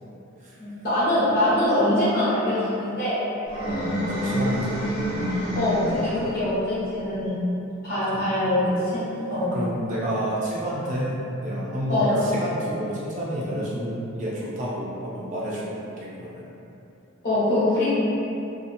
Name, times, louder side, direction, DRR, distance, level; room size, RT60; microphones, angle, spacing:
voice 1, 0.6-3.2 5.5-7.4 7.8-8.6 8.9-9.0 9.3-9.5 11.9-12.2 17.2-17.9, left 1 dB, 45° left, -11 dB, 1.0 m, -23 dB
sound 1, 3.5-6.4, equal, 85° left, 0.8 m, -27 dB
voice 2, 3.6-4.9 9.5-11.2 11.4-16.4, equal, 35° right, -7 dB, 0.4 m, -29 dB
2.8 x 2.3 x 2.5 m, 2.9 s
head